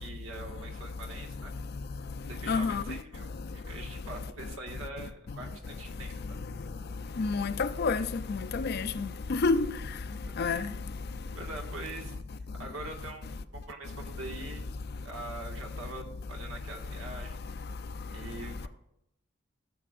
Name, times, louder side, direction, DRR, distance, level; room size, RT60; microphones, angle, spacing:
voice 1, 0.0-1.5 2.3-6.4 10.3-10.4 11.4-12.1 12.6-14.7 15.0-17.5 18.1-18.7, right 2 dB, 80° right, 1.8 m, -44 dB
voice 2, 2.5-2.8 7.2-8.0 8.5-9.6 10.4-10.6, left 4 dB, 50° left, 0.5 m, -28 dB
15.0 x 7.7 x 2.5 m
head